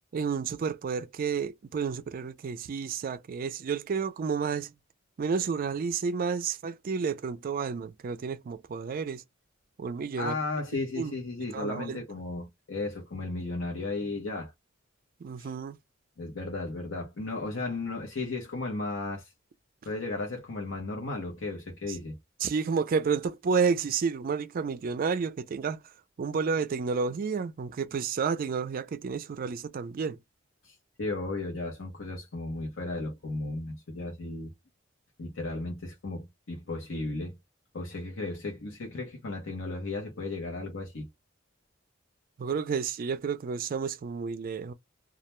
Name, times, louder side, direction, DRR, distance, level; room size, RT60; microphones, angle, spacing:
voice 1, 0.1-4.7 5.2-9.2 9.8-10.3 11.0-11.1 11.5-12.0 15.2-15.8 21.9-22.0 22.4-25.8 26.2-30.2 42.4-44.7, right 5 dB, 45° right, 0.4 m, -30 dB
voice 2, 10.2-14.5 15.4-15.5 16.2-19.3 19.8-22.2 30.6-34.5 35.2-37.4 37.7-41.1, left 2 dB, 80° left, 0.8 m, -35 dB
2.3 x 2.1 x 3.0 m
head